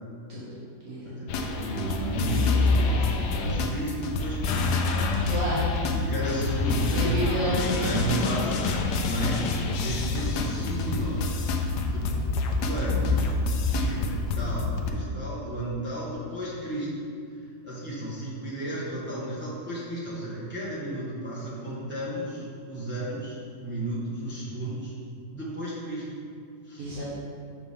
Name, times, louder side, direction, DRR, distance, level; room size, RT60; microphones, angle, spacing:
voice 1, 1.0-4.7 5.9-8.7 9.0-9.4 9.8-11.3 11.9-12.2 12.5-17.0 17.6-24.9 25.3-26.0 26.6-26.9, right 1 dB, 10° right, -9 dB, 1.2 m, -33 dB
sound 1, 1.3-14.9, left 3 dB, 80° left, 1.1 m, -27 dB
voice 2, 5.2-5.7 6.9-8.2 26.8-27.1, equal, 60° right, -8 dB, 1.4 m, -30 dB
5.8 x 4.5 x 3.6 m, 2.3 s
omnidirectional pair, 1.7 m